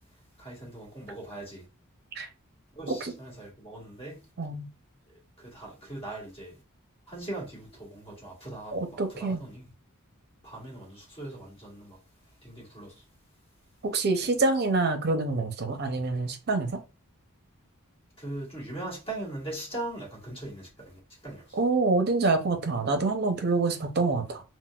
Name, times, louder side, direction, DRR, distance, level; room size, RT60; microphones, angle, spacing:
voice 1, 0.4-1.6 2.7-4.3 5.1-6.6 7.1-9.7 10.4-12.0 12.4-13.0 18.2-21.6, right 1 dB, 25° left, 1.4 m, -40 dB
voice 2, 4.4-4.7 8.7-9.4 13.8-16.7 21.5-24.4, right 3 dB, 45° right, 0.5 m, -26 dB
3.9 x 2.0 x 2.3 m
head